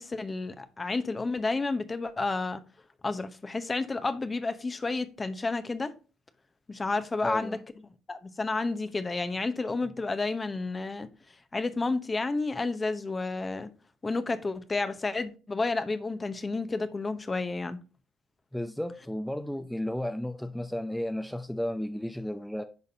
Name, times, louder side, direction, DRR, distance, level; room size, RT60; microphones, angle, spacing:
voice 1, 0.0-2.6 3.0-5.9 6.7-7.6 8.1-11.1 11.5-13.7 14.0-17.8, left 3 dB, 30° left, 0.8 m, -31 dB
voice 2, 7.2-7.6 18.5-22.6, left 1 dB, 5° left, 0.5 m, -33 dB
10.5 x 4.0 x 2.8 m
hypercardioid pair, 50°, 0 cm